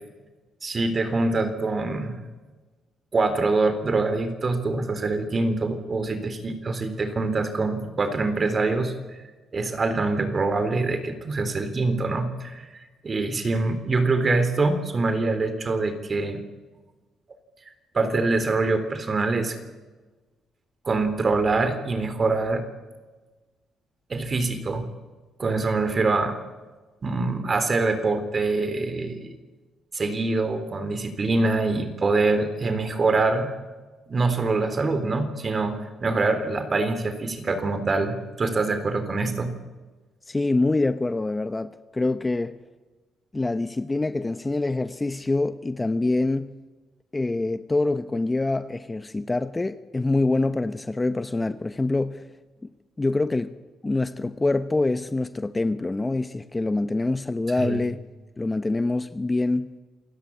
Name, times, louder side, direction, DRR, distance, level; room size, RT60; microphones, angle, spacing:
voice 1, 0.6-2.2 3.1-8.9 9.5-12.8 13.0-16.4 17.9-19.6 20.9-22.6 24.1-24.9 25.4-26.4 27.0-29.3 29.9-33.5 34.1-39.5 57.6-57.8, right 3 dB, 35° right, 3.7 m, -24 dB
voice 2, 40.3-42.6 43.3-46.6 47.1-52.3 53.0-53.5 53.8-58.0 58.4-59.8, left 2 dB, 20° left, 0.9 m, -25 dB
28.0 x 17.5 x 8.7 m
cardioid pair, 90°, 0 cm